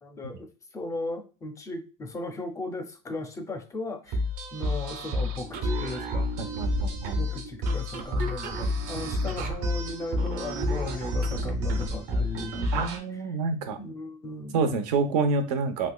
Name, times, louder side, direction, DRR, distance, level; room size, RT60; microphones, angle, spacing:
voice 1, 0.0-4.2 4.5-6.3 7.1-12.9 13.8-14.9, left 2 dB, 15° left, 6 dB, 0.4 m, -37 dB
sound 1, 4.1-13.0, left 1 dB, 65° right, 1.0 m, -30 dB
sound 2, 5.5-12.8, right 2 dB, 40° right, 0.6 m, -35 dB
voice 2, 6.4-7.3 12.7-13.8 14.5-15.9, right 4 dB, 90° right, 7 dB, 0.7 m, -27 dB
3.4 x 3.1 x 2.2 m, 0.32 s
cardioid pair, 150°, 20 cm